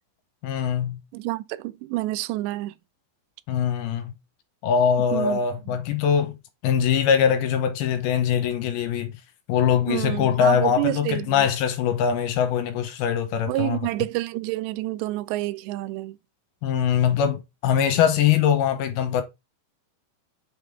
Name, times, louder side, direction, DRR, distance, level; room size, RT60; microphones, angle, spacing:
voice 1, 0.4-1.0 3.5-4.1 4.6-6.3 6.6-9.2 9.5-13.8 16.6-19.2, left 8 dB, 70° left, 2.7 m, -22 dB
voice 2, 1.1-2.7 5.1-5.4 5.7-5.8 9.9-11.5 13.5-16.2, right 17 dB, 85° right, 2.8 m, -28 dB
8.3 x 5.4 x 3.6 m
omnidirectional pair, 5.0 m